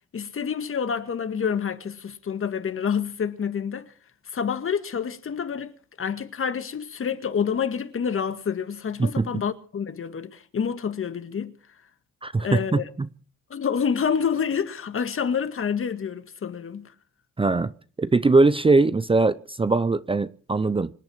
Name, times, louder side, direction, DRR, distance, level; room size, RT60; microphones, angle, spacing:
voice 1, 0.1-3.9 4.3-11.6 12.4-12.8 13.5-16.9, left 7 dB, 45° left, 1.8 m, -28 dB
voice 2, 12.2-13.1 17.4-17.7 18.0-20.9, right 3 dB, 20° right, 0.7 m, -21 dB
26.0 x 8.8 x 6.3 m
cardioid pair, 90°, 30 cm